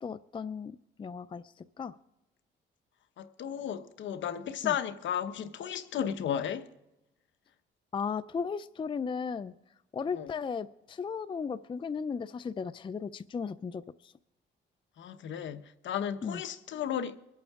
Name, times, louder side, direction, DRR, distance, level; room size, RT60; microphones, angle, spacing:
voice 1, 0.0-0.7 1.0-1.9 4.6-4.8 7.9-9.5 9.9-14.1 16.2-16.4, left 6 dB, 25° left, 0.4 m, -36 dB
voice 2, 3.2-6.7 10.1-10.3 15.0-17.2, left 9 dB, 70° left, 1.1 m, -34 dB
24.0 x 8.6 x 3.6 m
cardioid pair, 90°, 20 cm